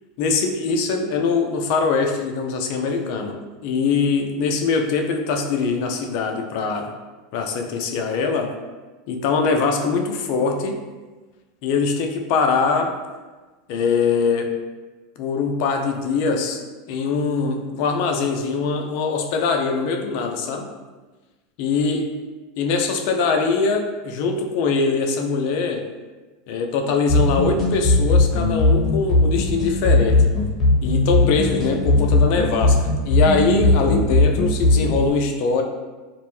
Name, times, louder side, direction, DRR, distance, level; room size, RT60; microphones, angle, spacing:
voice 1, 0.2-6.9 7.3-8.5 9.1-10.8 11.6-12.9 13.7-14.5 15.2-16.6 16.9-20.7 21.6-22.1 22.6-25.8 26.5-30.3 30.8-35.6, left 4 dB, 60° left, 3 dB, 0.4 m, -22 dB
sound 1, 27.1-35.1, left 2 dB, 30° left, 0.8 m, -18 dB
2.5 x 2.1 x 3.0 m, 1.3 s
hypercardioid pair, 95°, 0 cm